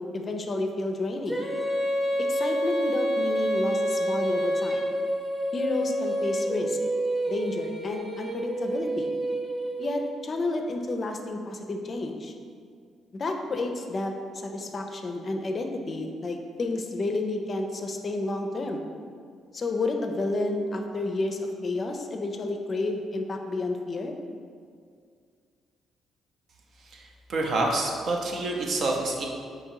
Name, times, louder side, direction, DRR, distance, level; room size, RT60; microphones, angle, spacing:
voice 1, 0.0-1.5 2.2-4.9 5.5-6.8 7.3-9.2 9.8-12.3 13.1-18.9 19.5-24.1, left 2 dB, 40° left, 4 dB, 0.4 m, -30 dB
Female singing, 1.3-10.1, equal, 20° right, 0.8 m, -28 dB
voice 2, 26.9-29.3, right 2 dB, 65° right, 0 dB, 0.6 m, -28 dB
3.7 x 2.9 x 4.5 m, 2.1 s
cardioid pair, 90°, 0 cm